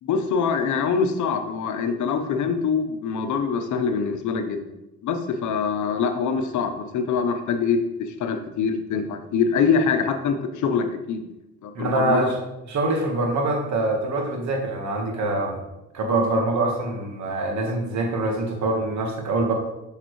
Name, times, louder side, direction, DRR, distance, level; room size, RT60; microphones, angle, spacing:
voice 1, 0.0-4.6 5.0-7.8 8.1-11.2 11.6-12.3, left 6 dB, 70° left, 7 dB, 0.8 m, -24 dB
voice 2, 11.7-12.4 12.7-15.6 15.9-19.5, right 2 dB, 70° right, 2 dB, 1.5 m, -24 dB
6.6 x 5.8 x 3.1 m, 0.95 s
cardioid pair, 90°, 30 cm